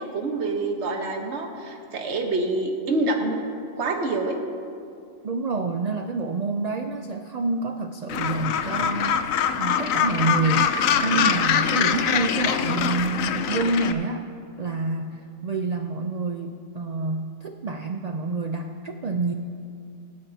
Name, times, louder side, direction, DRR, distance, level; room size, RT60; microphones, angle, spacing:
voice 1, 0.0-3.4 3.8-4.4, right 2 dB, 55° right, 2 dB, 1.4 m, -26 dB
voice 2, 5.2-10.7 11.0-14.2 14.6-19.3, right 3 dB, 85° right, 5 dB, 0.3 m, -27 dB
Gull seagull, 8.1-13.9, left 8 dB, 80° left, 1.0 m, -23 dB
24.0 x 9.4 x 2.8 m, 2.5 s
omnidirectional pair, 1.4 m